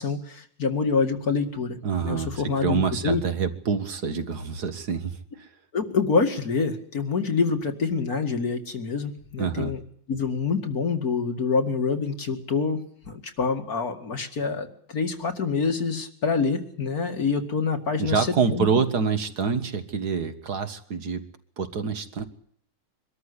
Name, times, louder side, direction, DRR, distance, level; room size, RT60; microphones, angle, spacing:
voice 1, 0.0-3.2 5.7-9.8 10.1-18.6, left 4 dB, 55° left, 5 dB, 2.6 m, -26 dB
voice 2, 1.8-2.3 2.6-5.5 9.4-9.7 18.0-21.3 21.6-22.2, right 5 dB, 60° right, 8 dB, 2.1 m, -26 dB
24.0 x 13.5 x 9.8 m, 0.63 s
omnidirectional pair, 2.0 m